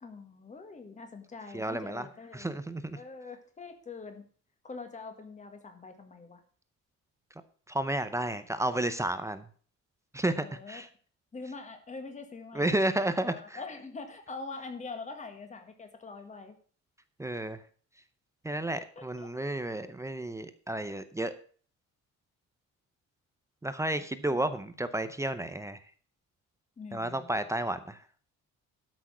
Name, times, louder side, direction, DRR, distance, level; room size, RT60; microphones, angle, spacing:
voice 1, 0.0-4.3 4.6-6.4 10.4-10.8 11.3-12.8 13.2-16.6 18.7-19.4 26.8-27.3, left 4 dB, 25° left, 6 dB, 1.8 m, -44 dB
voice 2, 1.5-2.1 2.3-3.0 7.7-9.4 10.1-10.9 12.5-13.6 17.2-17.6 18.4-21.3 23.6-25.8 26.9-28.0, right 1 dB, 10° right, 11 dB, 0.6 m, -32 dB
12.5 x 6.3 x 6.0 m, 0.43 s
cardioid pair, 175°, 31 cm